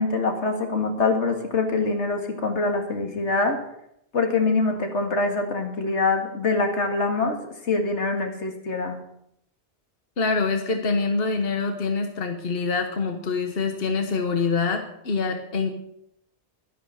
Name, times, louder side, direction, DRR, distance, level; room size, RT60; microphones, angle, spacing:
voice 1, 0.0-3.6 4.1-7.4 7.6-9.0, left 3 dB, 80° left, 4 dB, 2.2 m, -24 dB
voice 2, 10.2-15.7, left 4 dB, 55° left, 5 dB, 1.4 m, -25 dB
12.0 x 10.5 x 6.5 m, 0.75 s
omnidirectional pair, 1.2 m